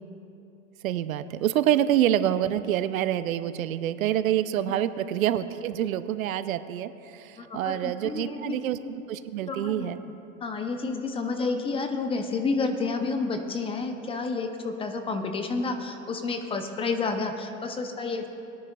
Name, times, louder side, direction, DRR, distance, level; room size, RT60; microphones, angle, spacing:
voice 1, 0.8-10.0, right 11 dB, 85° right, 13 dB, 0.6 m, -27 dB
voice 2, 7.4-8.9 9.5-9.9 10.4-18.3, left 4 dB, 15° left, 6 dB, 0.5 m, -30 dB
20.0 x 9.7 x 2.3 m, 2.9 s
hypercardioid pair, 120°, 40 cm